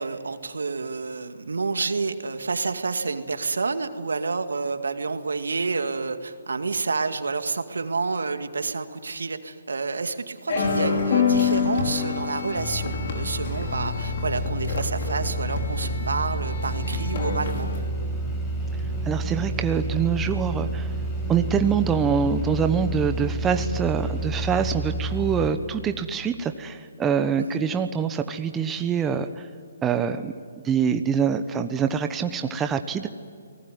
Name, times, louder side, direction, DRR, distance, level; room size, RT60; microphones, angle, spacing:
voice 1, 0.0-17.7 27.4-27.6, right 4 dB, 80° right, 9 dB, 2.1 m, -29 dB
sound 1, 10.5-17.8, left 6 dB, 55° left, 5.0 m, -27 dB
sound 2, 12.6-25.5, right 1 dB, 20° left, 5.7 m, -29 dB
voice 2, 19.1-20.9 21.3-29.5 29.8-30.3 30.6-33.1, right 7 dB, 15° right, 8 dB, 1.1 m, -25 dB
29.5 x 19.5 x 9.5 m, 2.2 s
hypercardioid pair, 150°, 0 cm